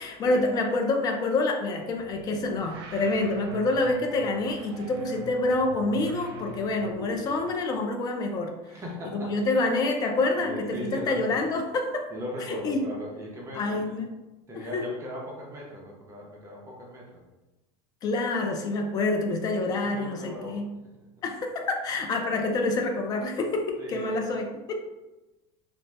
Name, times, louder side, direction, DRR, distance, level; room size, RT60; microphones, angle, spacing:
voice 1, 0.0-8.5 9.1-12.1 12.6-12.9 13.5-14.1 14.5-14.9 18.0-20.7 21.2-24.7, left 2 dB, 30° left, 3 dB, 0.4 m, -27 dB
sound 1, 2.0-7.5, right 2 dB, 85° right, 0.5 m, -43 dB
voice 2, 8.6-9.5 10.3-11.5 12.1-13.8 14.5-17.2 19.7-20.6 23.8-24.1, equal, 20° right, -2 dB, 0.6 m, -38 dB
2.7 x 2.0 x 3.2 m, 1.1 s
supercardioid pair, 140°, 13 cm